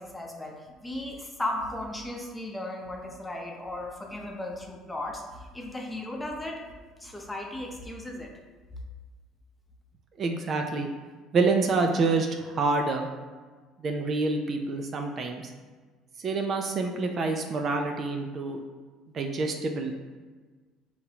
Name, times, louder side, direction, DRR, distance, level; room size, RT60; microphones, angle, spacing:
voice 1, 0.0-6.7 7.0-8.3, left 1 dB, 10° left, 0 dB, 0.8 m, -36 dB
voice 2, 10.2-10.9 11.3-13.1 13.8-15.4 16.2-18.6 19.1-19.9, right 3 dB, 45° right, 4 dB, 0.5 m, -27 dB
5.8 x 2.8 x 2.8 m, 1.4 s
supercardioid pair, 95°, 0 cm